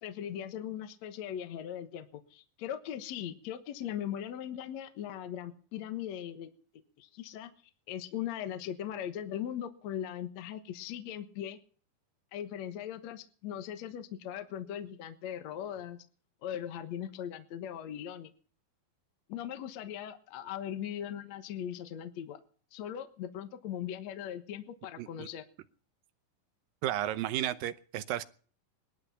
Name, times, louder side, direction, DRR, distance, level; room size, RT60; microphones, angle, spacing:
voice 1, 0.0-6.5 7.0-7.5 7.9-11.6 12.3-16.0 16.4-18.3 19.3-22.4 22.7-25.5, left 10 dB, 60° left, 9 dB, 2.2 m, -39 dB
voice 2, 25.0-25.3 26.8-28.2, right 13 dB, 80° right, 12 dB, 2.5 m, -33 dB
20.5 x 12.0 x 5.7 m, 0.43 s
omnidirectional pair, 4.1 m